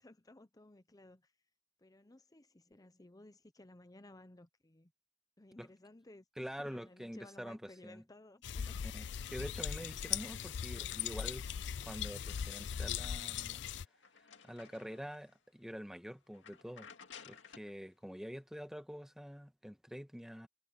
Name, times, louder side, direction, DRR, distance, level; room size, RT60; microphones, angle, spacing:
voice 1, 0.0-1.3 1.8-4.9 5.4-8.8 10.4-10.9, left 2 dB, 20° left, 0.8 m, -58 dB
voice 2, 6.4-8.0 8.8-11.4 11.7-13.6 14.4-16.9 17.2-20.5, equal, 5° right, 1.5 m, -46 dB
sound 1, 8.4-13.9, left 8 dB, 70° left, 0.4 m, -39 dB
sound 2, 10.7-11.4 11.7-15.4 15.8-16.0 16.3-17.8, left 6 dB, 85° left, 2.2 m, -58 dB
head